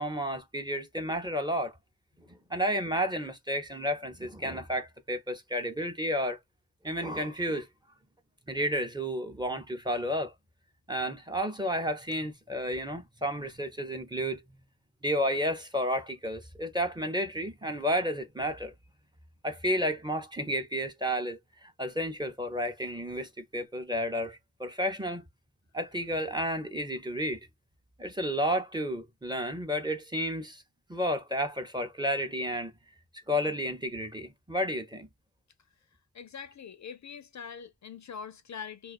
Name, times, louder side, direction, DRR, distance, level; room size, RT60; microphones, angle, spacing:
voice 1, 0.0-1.7 2.3-6.4 6.8-7.7 8.5-10.3 10.9-14.6 15.0-18.7 19.4-25.2 25.7-27.4 28.0-30.6 30.9-32.7 33.3-35.1, equal, 10° right, 0.5 m, -31 dB
voice 2, 36.1-38.9, left 7 dB, 55° left, 0.4 m, -43 dB
2.3 x 2.2 x 2.4 m
wide cardioid pair, 85°, 36 cm